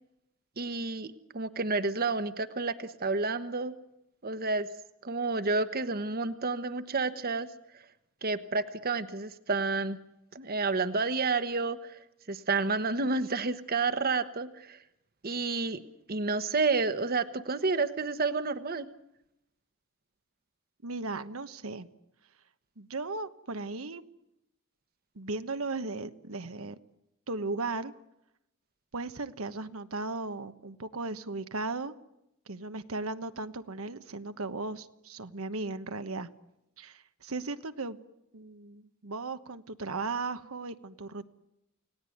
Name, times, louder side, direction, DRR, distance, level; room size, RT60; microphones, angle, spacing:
voice 1, 0.6-3.7 4.2-4.7 5.0-7.5 8.2-10.0 10.3-11.9 12.3-14.8 15.2-15.8 16.1-18.9, right 3 dB, 45° right, 12 dB, 1.2 m, -30 dB
voice 2, 20.8-21.9 22.8-24.0 25.1-26.8 27.3-27.9 28.9-31.9 32.5-36.3 36.8-38.0 38.3-41.3, right 3 dB, 80° right, 10 dB, 1.2 m, -36 dB
29.5 x 18.0 x 9.3 m, 0.85 s
head